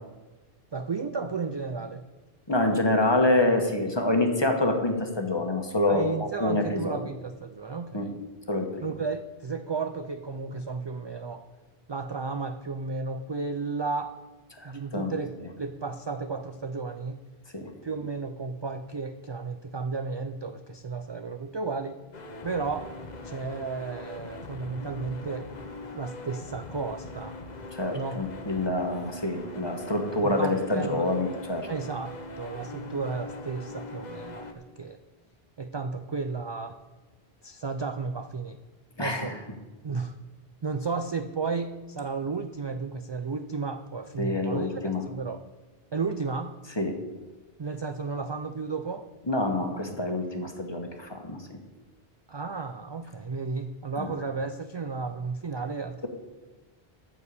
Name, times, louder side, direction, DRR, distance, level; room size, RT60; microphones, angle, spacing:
voice 1, 0.7-2.0 5.9-8.1 8.8-11.4 11.9-14.1 14.6-17.2 17.8-22.0 22.4-22.9 23.2-25.5 25.9-27.4 27.9-28.2 30.2-31.1 31.7-35.0 35.6-36.8 37.4-38.6 39.0-39.3 39.8-40.1 40.6-44.8 45.1-45.4 45.9-46.6 47.6-49.1 52.3-56.1, right 4 dB, 45° right, 8 dB, 0.3 m, -33 dB
voice 2, 2.5-7.0 7.9-8.1 8.5-8.8 14.5-15.1 17.5-17.7 27.7-31.7 39.0-39.4 44.2-45.0 46.8-47.0 49.3-51.6 54.0-54.1, left 2 dB, 25° left, 4 dB, 1.3 m, -27 dB
sound 1, 22.1-34.5, left 2 dB, 45° left, 1.0 m, -41 dB
13.5 x 4.6 x 8.3 m, 1.2 s
omnidirectional pair, 1.1 m